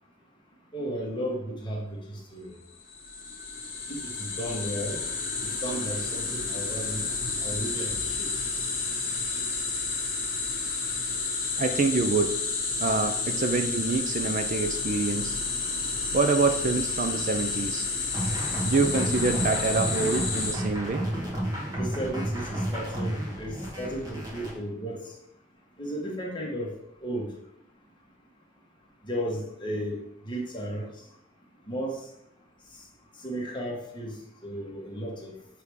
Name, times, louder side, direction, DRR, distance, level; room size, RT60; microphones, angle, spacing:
voice 1, 0.7-2.6 3.9-5.0 5.6-7.0 7.4-8.3 9.3-9.4 21.8-25.0 25.8-26.7 27.0-27.3 29.0-30.0 30.2-30.8 31.7-32.0 33.2-34.2 34.4-35.3, right 1 dB, 25° left, -2 dB, 1.4 m, -34 dB
sound 1, 2.8-20.6, left 4 dB, 45° left, 1.5 m, -30 dB
voice 2, 11.6-12.3 12.8-15.4 16.1-17.9 18.6-21.0, right 3 dB, 40° right, 7 dB, 0.4 m, -26 dB
sound 2, 18.1-24.5, equal, 20° right, 1.5 m, -32 dB
6.9 x 3.4 x 4.8 m, 0.77 s
head